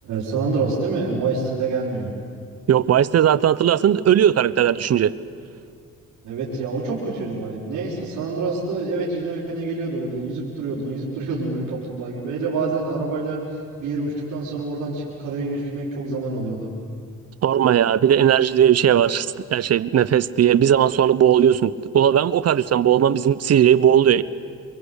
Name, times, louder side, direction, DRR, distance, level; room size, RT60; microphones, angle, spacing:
voice 1, 0.0-2.1 6.2-16.7, right 3 dB, 75° right, -7 dB, 6.5 m, -27 dB
voice 2, 2.7-5.1 17.4-24.2, right 9 dB, 55° right, 17 dB, 1.0 m, -17 dB
29.0 x 23.0 x 8.4 m, 2.2 s
cardioid pair, 90°, 30 cm